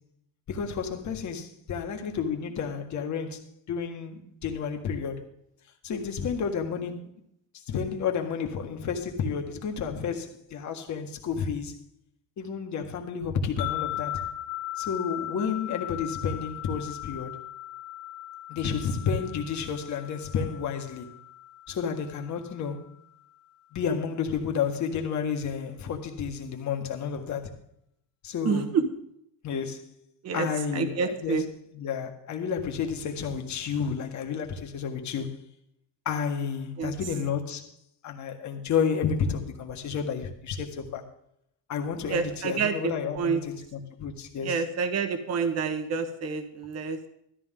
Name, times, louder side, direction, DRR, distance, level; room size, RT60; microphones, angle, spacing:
voice 1, 0.5-5.2 5.8-7.1 7.7-11.8 12.4-14.3 14.8-17.3 18.5-21.1 21.7-22.9 23.7-27.5 28.2-28.7 29.4-29.9 30.3-31.5 31.7-35.3 36.1-37.7 38.0-41.1 41.7-44.6, left 6 dB, 40° left, 1.8 m, -31 dB
sound 1, 13.6-22.9, left 15 dB, 65° left, 1.4 m, -38 dB
voice 2, 28.4-28.8 30.2-30.5 30.7-31.4 36.8-36.9 42.1-43.4 44.4-47.1, right 5 dB, 35° right, 1.4 m, -28 dB
16.5 x 13.5 x 3.8 m
cardioid pair, 165°, 45 cm